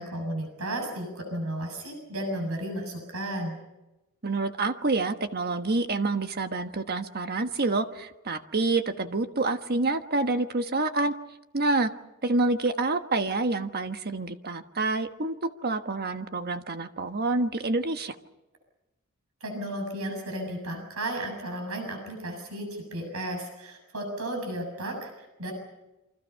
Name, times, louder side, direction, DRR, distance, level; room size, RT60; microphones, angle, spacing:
voice 1, 0.0-3.6 19.4-25.5, right 1 dB, 75° right, 3 dB, 7.1 m, -34 dB
voice 2, 4.2-11.1 11.5-11.9 12.2-18.1, right 3 dB, 45° right, 8 dB, 1.3 m, -27 dB
28.5 x 25.0 x 5.7 m, 0.99 s
head